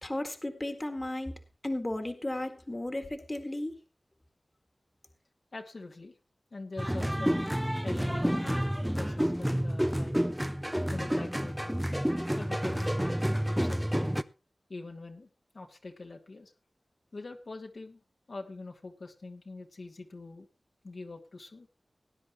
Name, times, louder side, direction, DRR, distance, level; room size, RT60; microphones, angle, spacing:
voice 1, 0.0-3.7, left 1 dB, 30° left, 7 dB, 1.9 m, -35 dB
voice 2, 5.5-6.1 6.5-7.4 7.8-10.2 10.9-11.8 12.3-14.2 14.7-15.3 15.5-16.5 17.1-18.0 18.3-20.5 20.8-21.7, left 3 dB, 70° left, 2 dB, 2.1 m, -44 dB
sound 1, 6.8-14.2, equal, 5° right, 0.7 m, -29 dB
19.0 x 10.0 x 3.1 m, 0.30 s
wide cardioid pair, 50°, 0 cm